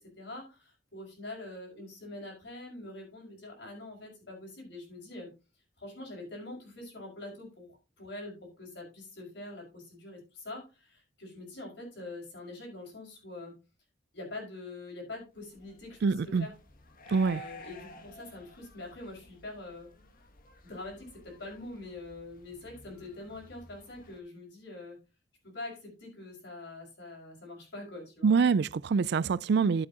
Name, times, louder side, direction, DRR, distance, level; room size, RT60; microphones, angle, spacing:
voice 1, 0.2-5.3 5.8-13.5 14.1-16.5 17.2-19.9 20.6-25.0 25.4-28.3, left 2 dB, 70° left, 5.7 m, -44 dB
sound 1, 15.4-24.2, equal, 50° left, 1.5 m, -53 dB
voice 2, 16.0-16.5 17.1-17.4 28.2-29.9, right 5 dB, 65° right, 0.4 m, -25 dB
12.0 x 8.4 x 2.9 m
head